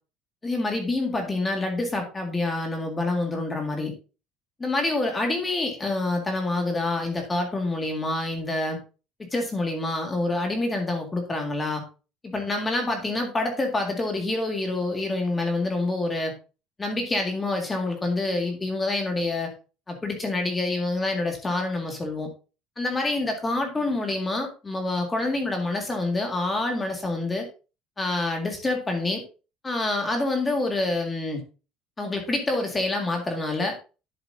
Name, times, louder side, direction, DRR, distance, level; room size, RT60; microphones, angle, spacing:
voice 1, 0.4-3.9 4.6-8.8 9.2-11.8 12.2-16.3 16.8-19.5 19.9-22.3 22.8-27.4 28.0-29.2 29.6-31.4 32.0-33.7, left 2 dB, 15° left, 3 dB, 2.0 m, -27 dB
10.5 x 7.5 x 2.7 m, 0.32 s
cardioid pair, 170°, 0 cm